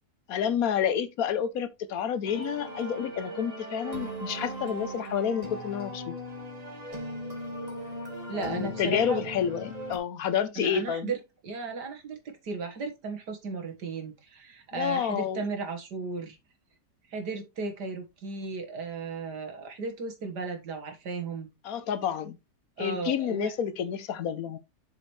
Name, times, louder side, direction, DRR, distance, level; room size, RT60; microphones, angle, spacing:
voice 1, 0.3-6.1 8.3-11.1 14.7-15.4 21.6-22.4 22.8-24.6, left 8 dB, 65° left, 1.1 m, -29 dB
sound 1, 2.2-10.0, right 1 dB, 25° right, 2.0 m, -38 dB
voice 2, 8.3-9.2 10.6-16.4 17.1-21.5 22.8-23.5, right 4 dB, 85° right, 2.3 m, -35 dB
7.6 x 6.2 x 3.2 m
omnidirectional pair, 1.7 m